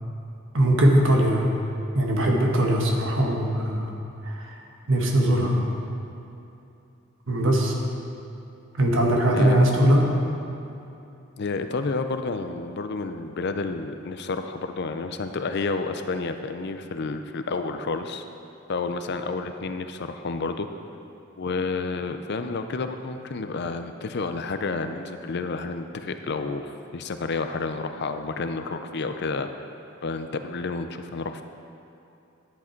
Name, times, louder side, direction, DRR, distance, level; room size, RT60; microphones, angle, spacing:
voice 1, 0.5-1.5 1.9-3.9 4.2-4.6 4.9-5.6 7.3-7.7 8.8-10.1, right 1 dB, 70° right, 0 dB, 1.4 m, -20 dB
voice 2, 11.4-18.2 18.7-20.7 21.4-29.5 30.0-31.4, left 3 dB, 55° left, 8 dB, 0.5 m, -30 dB
11.0 x 8.4 x 4.5 m, 2.8 s
head